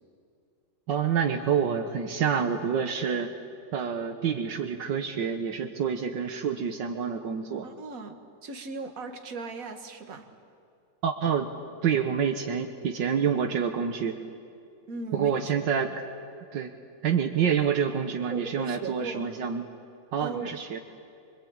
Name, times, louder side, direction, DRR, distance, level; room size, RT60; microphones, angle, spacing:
voice 1, 0.9-3.3 3.7-7.7 11.0-11.5 11.8-14.2 15.1-15.9 16.5-16.7 17.0-19.7 20.1-20.8, right 7 dB, 70° right, 6 dB, 1.8 m, -27 dB
voice 2, 7.6-10.3 14.9-16.0 18.3-19.3 20.2-20.5, right 4 dB, 50° right, 5 dB, 2.1 m, -38 dB
25.5 x 24.0 x 8.7 m, 2.5 s
omnidirectional pair, 2.0 m